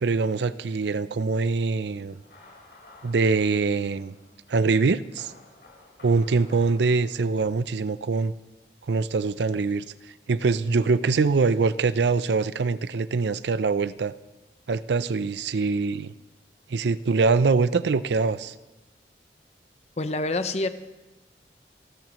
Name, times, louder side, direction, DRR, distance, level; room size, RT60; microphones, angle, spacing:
voice 1, 0.0-2.2 3.0-4.1 4.5-5.3 6.0-8.3 8.9-9.9 10.3-14.1 14.7-16.1 16.7-18.5, right 4 dB, 80° right, 15 dB, 0.5 m, -23 dB
sound 1, 2.1-7.9, left 2 dB, 65° left, 4.4 m, -53 dB
voice 2, 20.0-20.7, left 2 dB, 35° left, 10 dB, 0.7 m, -26 dB
28.5 x 12.5 x 3.0 m, 1.1 s
head